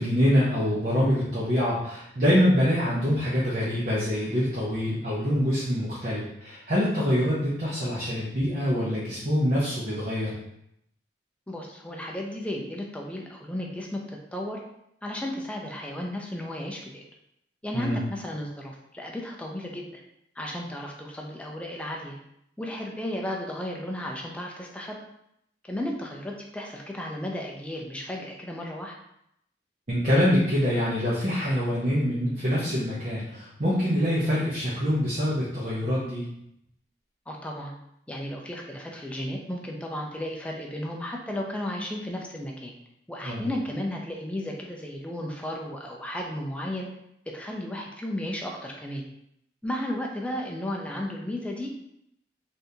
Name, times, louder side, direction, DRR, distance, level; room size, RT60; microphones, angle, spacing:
voice 1, 0.0-10.3 17.7-18.0 29.9-36.3 43.2-43.4, equal, 40° right, -9 dB, 0.7 m, -25 dB
voice 2, 11.5-14.6 15.0-17.0 17.6-20.0 20.4-22.2 22.6-24.9 25.6-29.0 37.3-37.7 38.1-42.7 43.1-46.9 47.3-49.0 49.6-51.7, left 1 dB, 5° left, 0 dB, 0.4 m, -34 dB
3.5 x 2.6 x 2.7 m, 0.77 s
head